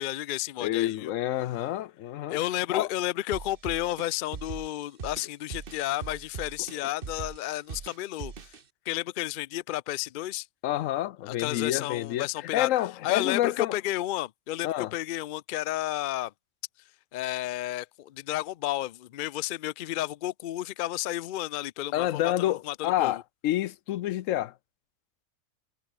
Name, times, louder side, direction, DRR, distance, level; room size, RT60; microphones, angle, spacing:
voice 1, 0.0-1.1 2.3-8.6 8.9-10.5 11.2-12.7 13.0-16.3 17.1-23.2, left 14 dB, 85° left, 0.4 m, -32 dB
voice 2, 0.6-2.4 2.7-2.9 10.6-13.7 14.6-14.9 21.9-24.5, left 13 dB, 70° left, 0.9 m, -28 dB
sound 1, 3.3-8.6, right 6 dB, 45° right, 1.2 m, -40 dB
omnidirectional pair, 1.4 m